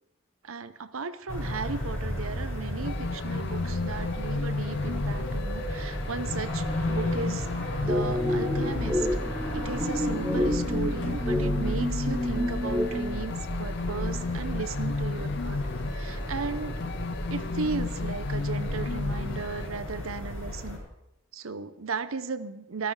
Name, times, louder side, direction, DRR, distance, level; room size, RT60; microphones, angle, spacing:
voice 1, 0.4-7.5 7.8-9.1 9.5-16.8 17.3-20.8 21.3-22.9, right 4 dB, 90° right, 13 dB, 0.8 m, -35 dB
sound 1, 1.3-20.8, equal, 75° left, 5.6 m, -33 dB
sound 2, 2.8-19.7, left 4 dB, 55° left, 0.4 m, -34 dB
sound 3, 7.9-13.2, left 1 dB, 5° right, 1.2 m, -29 dB
13.5 x 13.5 x 4.9 m, 0.86 s
head